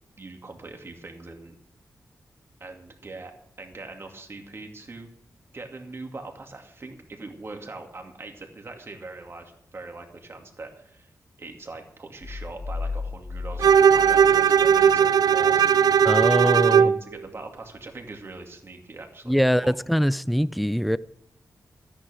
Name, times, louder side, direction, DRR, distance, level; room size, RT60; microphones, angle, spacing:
voice 1, 0.2-1.5 2.6-5.1 5.5-11.1 11.4-16.1 16.4-19.7, right 3 dB, 40° right, 2.4 m, -41 dB
sound 1, 12.2-15.0, left 4 dB, 60° left, 1.6 m, -35 dB
Bowed string instrument, 13.6-17.0, right 8 dB, 80° right, 0.5 m, -18 dB
voice 2, 16.0-16.9 19.3-21.0, equal, ahead, 0.4 m, -22 dB
14.0 x 10.0 x 6.4 m
wide cardioid pair, 130°, 6 cm